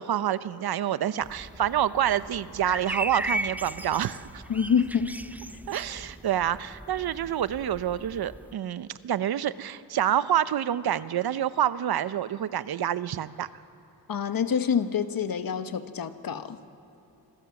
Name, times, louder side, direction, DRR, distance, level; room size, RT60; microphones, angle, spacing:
voice 1, 0.0-4.4 5.7-13.5, right 10 dB, 65° right, 15 dB, 0.8 m, -27 dB
sound 1, 1.2-8.5, right 1 dB, 5° right, 0.4 m, -37 dB
voice 2, 4.5-5.1 14.1-16.6, left 7 dB, 55° left, 9 dB, 1.3 m, -26 dB
27.5 x 16.5 x 7.2 m, 2.9 s
cardioid pair, 80°, 41 cm